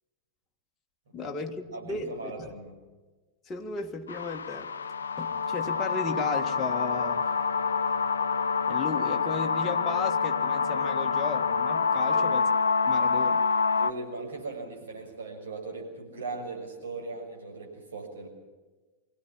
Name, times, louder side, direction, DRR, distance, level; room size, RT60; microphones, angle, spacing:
voice 1, 1.1-2.5 3.5-4.7 5.2-7.2 8.7-12.4 12.8-13.4, left 4 dB, 20° left, 2 dB, 1.8 m, -35 dB
voice 2, 1.7-2.7 12.0-12.3 13.8-18.3, right 3 dB, 65° right, 1 dB, 6.5 m, -38 dB
sound 1, 4.1-13.9, left 5 dB, 70° left, 0.7 m, -27 dB
25.0 x 17.5 x 7.4 m, 1.3 s
figure-of-eight pair, 90°, 0 cm